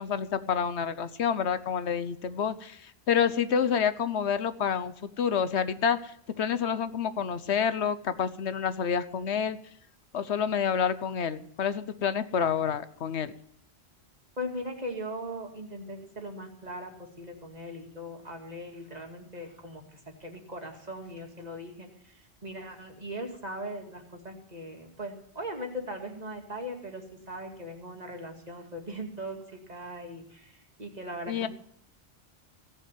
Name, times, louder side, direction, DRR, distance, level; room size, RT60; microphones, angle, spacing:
voice 1, 0.0-9.6 10.1-13.3 31.3-31.5, left 7 dB, 85° left, 13 dB, 1.2 m, -28 dB
voice 2, 14.4-31.5, equal, 40° right, 3 dB, 2.5 m, -39 dB
17.0 x 7.1 x 9.1 m, 0.70 s
omnidirectional pair, 1.1 m